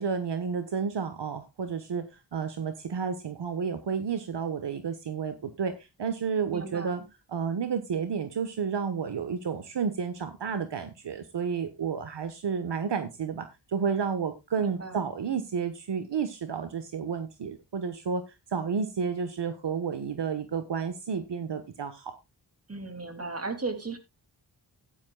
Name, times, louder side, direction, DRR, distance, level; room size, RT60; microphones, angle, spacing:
voice 1, 0.0-7.0 7.3-18.2 18.5-22.1, right 6 dB, 70° right, 10 dB, 1.3 m, -31 dB
voice 2, 6.5-7.0 14.6-15.1 22.7-24.0, right 3 dB, 35° right, 8 dB, 2.7 m, -36 dB
15.0 x 10.5 x 2.3 m, 0.23 s
cardioid pair, 75°, 44 cm